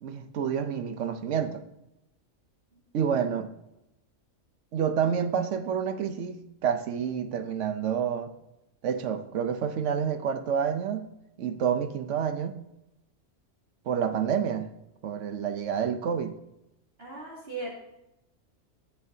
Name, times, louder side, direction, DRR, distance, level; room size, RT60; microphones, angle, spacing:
voice 1, 0.0-1.6 2.9-3.5 4.7-8.3 8.8-11.1 11.4-12.6 13.9-14.7 15.0-16.4, right 7 dB, 70° right, 1.0 m, -28 dB
voice 2, 17.0-17.7, right 2 dB, 50° right, 2.6 m, -38 dB
14.5 x 6.9 x 2.7 m
omnidirectional pair, 1.4 m